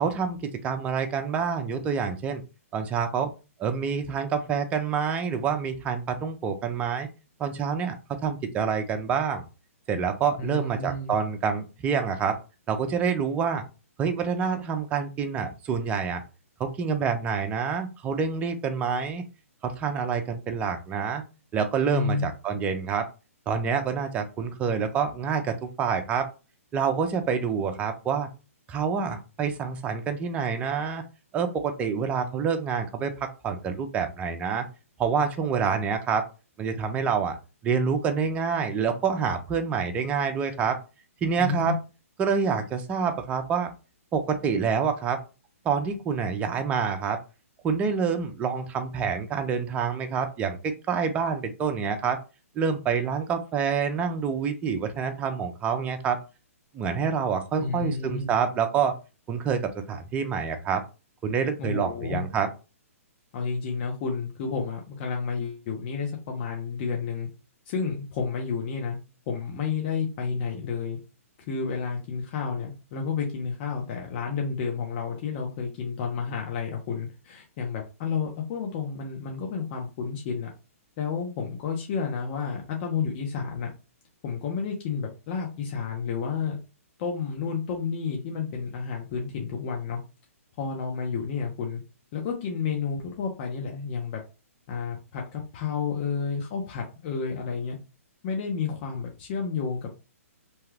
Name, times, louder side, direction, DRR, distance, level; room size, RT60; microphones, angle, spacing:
voice 1, 0.0-2.4 2.7-3.3 3.6-7.1 7.4-8.0 8.2-9.4 9.9-12.4 12.7-13.6 14.0-16.2 16.6-19.2 19.6-21.2 21.5-23.1 23.5-26.3 26.7-28.3 28.7-31.0 31.3-34.6 35.0-36.2 36.6-37.4 37.6-40.8 41.2-41.7 42.2-43.7 44.1-45.2 45.6-47.2 47.6-52.2 52.6-56.2 56.7-59.0 59.3-59.6 59.9-60.8 61.2-62.5, right 6 dB, 15° right, 6 dB, 0.5 m, -27 dB
voice 2, 10.4-11.1 21.9-22.2 41.4-41.7 57.6-58.3 61.6-62.2 63.3-67.3 67.7-71.0 71.5-80.5 81.0-83.7 84.2-86.6 87.0-90.0 90.6-91.8 92.1-94.2 94.7-97.8 98.2-99.9, left 5 dB, 40° left, 1 dB, 0.7 m, -31 dB
2.9 x 2.3 x 3.3 m, 0.31 s
hypercardioid pair, 140°, 8 cm